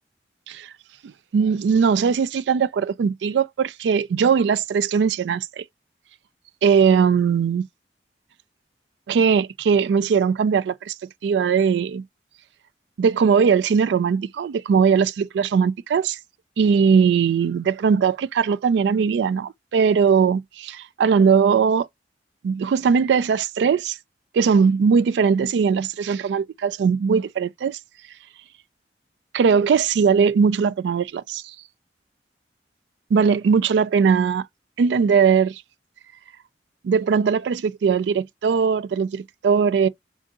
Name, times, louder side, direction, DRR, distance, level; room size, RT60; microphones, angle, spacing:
voice 1, 1.0-5.6 6.6-7.7 9.1-10.9 11.2-12.0 13.0-16.2 16.6-21.9 22.4-24.0 24.3-27.8 29.3-31.4 33.1-34.4 34.8-35.6 36.8-39.9, right 6 dB, 85° right, 0.3 m, -20 dB
3.7 x 2.6 x 3.6 m
head